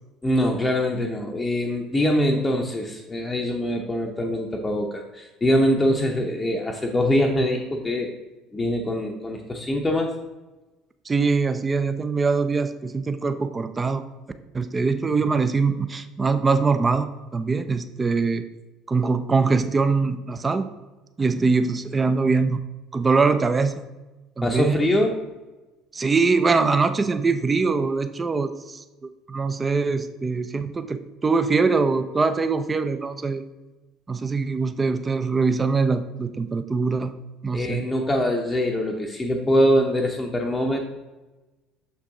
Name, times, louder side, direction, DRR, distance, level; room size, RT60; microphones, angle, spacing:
voice 1, 0.2-8.1 8.5-10.1 24.4-25.2 37.5-40.8, equal, 15° left, 1 dB, 0.7 m, -23 dB
voice 2, 11.1-14.0 14.5-18.4 18.9-20.7 21.2-22.6 22.9-23.8 24.4-24.8 25.9-33.4 34.1-37.1 37.4-37.9, right 4 dB, 20° right, 11 dB, 0.4 m, -23 dB
6.7 x 4.6 x 3.6 m, 1.1 s
figure-of-eight pair, 60°, 0 cm